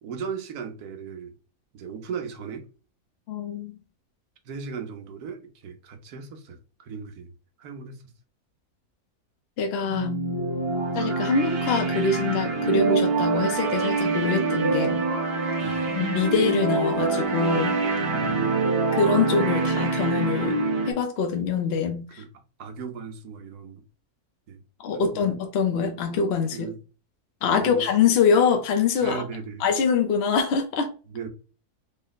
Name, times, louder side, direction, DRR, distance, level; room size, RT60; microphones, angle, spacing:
voice 1, 0.0-1.3 1.7-2.7 4.4-7.3 7.6-8.0 15.6-15.9 18.0-18.4 22.2-22.3 22.6-23.8 24.5-24.6 24.9-25.3 26.5-26.8 27.5-27.8 29.0-29.6 31.1-31.3, right 6 dB, 80° right, 1.3 m, -37 dB
voice 2, 3.3-3.7 9.6-10.2 10.9-15.1 15.9-17.8 18.9-20.6 20.9-22.2 24.8-26.7 27.4-29.2 29.6-30.9, left 5 dB, 60° left, 0.7 m, -24 dB
sound 1, 9.8-20.9, right 3 dB, 50° right, 0.9 m, -25 dB
3.8 x 2.0 x 3.9 m
omnidirectional pair, 1.6 m